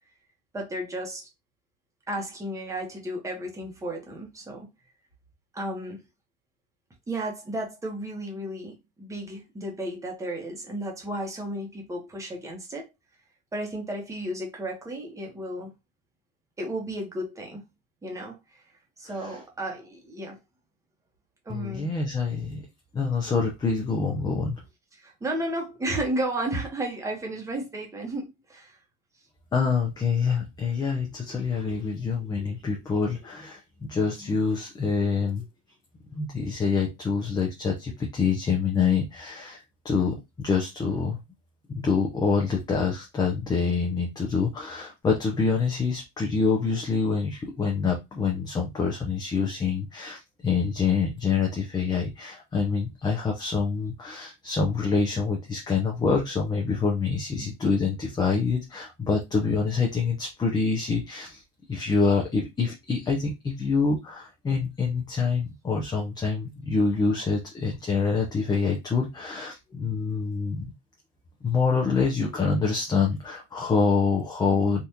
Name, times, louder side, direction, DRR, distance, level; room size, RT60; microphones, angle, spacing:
voice 1, 0.5-1.3 2.1-4.7 5.5-6.0 7.1-12.9 13.5-15.7 16.6-17.6 18.0-18.6 19.0-20.4 21.4-21.9 24.9-28.8 57.3-57.5 74.5-74.7, right 1 dB, 10° right, 0.9 m, -33 dB
voice 2, 21.5-22.6 22.9-24.6 29.5-35.4 36.1-41.2 41.7-61.4 61.7-70.7 71.4-74.8, left 5 dB, 15° left, 0.5 m, -26 dB
3.6 x 2.4 x 2.7 m
cardioid pair, 145°, 30 cm